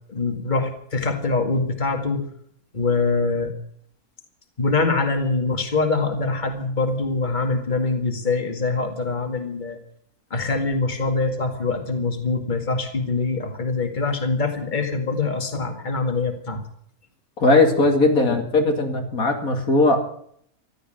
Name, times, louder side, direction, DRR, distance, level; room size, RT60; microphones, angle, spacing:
voice 1, 0.1-2.2 2.7-3.5 4.6-9.8 10.3-16.6, left 3 dB, 35° left, 4 dB, 2.2 m, -24 dB
voice 2, 17.4-20.0, left 2 dB, 85° left, 3 dB, 2.8 m, -18 dB
14.5 x 12.5 x 7.7 m, 0.66 s
omnidirectional pair, 1.5 m